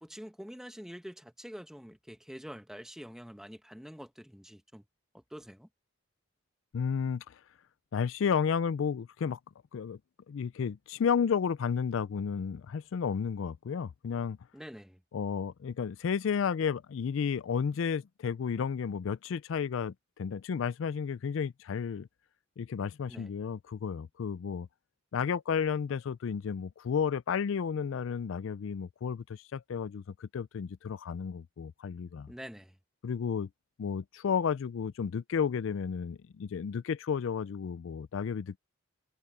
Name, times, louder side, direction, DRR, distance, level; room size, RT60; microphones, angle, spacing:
voice 1, 0.0-4.8 5.1-5.7 14.5-15.0 23.1-23.3 32.3-32.8, equal, 5° right, 1.1 m, -46 dB
voice 2, 6.7-7.4 7.9-9.4 9.7-10.0 10.3-14.4 15.1-22.1 22.6-24.7 25.1-32.3 33.0-33.5 33.8-38.6, left 6 dB, 80° left, 0.4 m, -32 dB
head